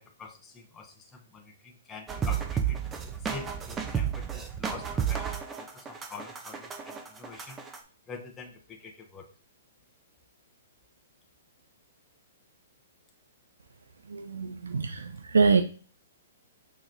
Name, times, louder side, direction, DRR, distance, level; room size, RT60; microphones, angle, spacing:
voice 1, 0.0-2.8 3.2-7.6 8.1-9.2, left 4 dB, 15° left, 2 dB, 0.7 m, -45 dB
sound 1, 2.1-7.8, right 8 dB, 15° right, 0.6 m, -32 dB
voice 2, 14.1-15.6, right 5 dB, 85° right, 8 dB, 0.4 m, -25 dB
6.2 x 3.0 x 2.6 m, 0.40 s
hypercardioid pair, 130°, 0 cm